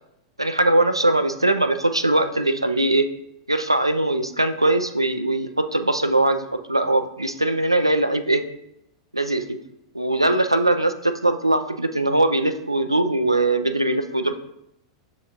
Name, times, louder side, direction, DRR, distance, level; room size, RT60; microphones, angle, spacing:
voice 1, 0.4-3.1 3.5-8.4 9.1-9.6 9.9-14.4, right 2 dB, 90° right, 9 dB, 0.3 m, -21 dB
6.8 x 2.9 x 2.5 m, 0.82 s
figure-of-eight pair, 95°, 3 cm